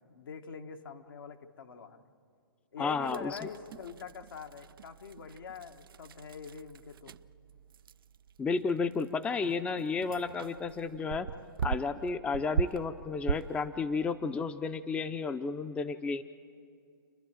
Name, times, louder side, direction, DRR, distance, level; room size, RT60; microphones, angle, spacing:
voice 1, 0.1-2.0 2.7-7.1, left 5 dB, 80° left, 4 dB, 1.5 m, -44 dB
voice 2, 2.8-3.5 8.4-11.3 11.6-16.2, left 4 dB, 10° left, 11 dB, 0.5 m, -32 dB
sound 1, 3.0-13.8, right 7 dB, 85° right, 0.4 m, -40 dB
28.5 x 11.0 x 9.0 m, 2.3 s
hypercardioid pair, 135°, 11 cm